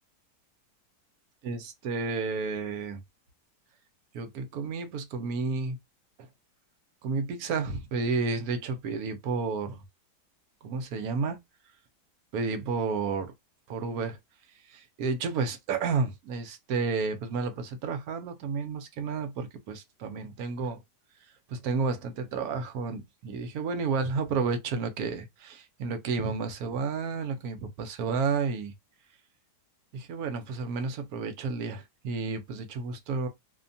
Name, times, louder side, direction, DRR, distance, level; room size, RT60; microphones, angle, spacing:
voice 1, 1.4-3.0 4.1-5.8 7.0-9.8 10.6-11.4 12.3-13.3 13.7-14.2 14.7-20.8 21.5-28.7 29.9-33.3, right 4 dB, 70° right, 1.0 m, -31 dB
2.8 x 2.1 x 2.6 m
omnidirectional pair, 1.8 m